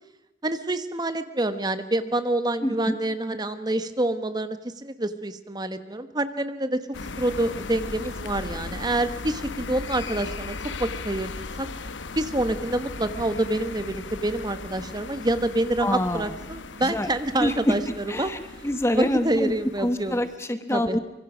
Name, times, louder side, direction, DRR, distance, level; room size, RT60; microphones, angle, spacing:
voice 1, 0.4-6.9 7.2-11.7 12.2-18.3 18.9-20.2 20.7-21.0, right 1 dB, 20° right, 11 dB, 1.1 m, -27 dB
voice 2, 2.6-3.0 15.8-16.4 16.8-17.1 17.4-17.7 18.1-19.5 19.8-21.0, left 1 dB, 15° left, 9 dB, 0.9 m, -26 dB
sound 1, 6.9-20.4, left 3 dB, 80° left, 1.0 m, -37 dB
24.5 x 23.0 x 6.2 m, 0.94 s
head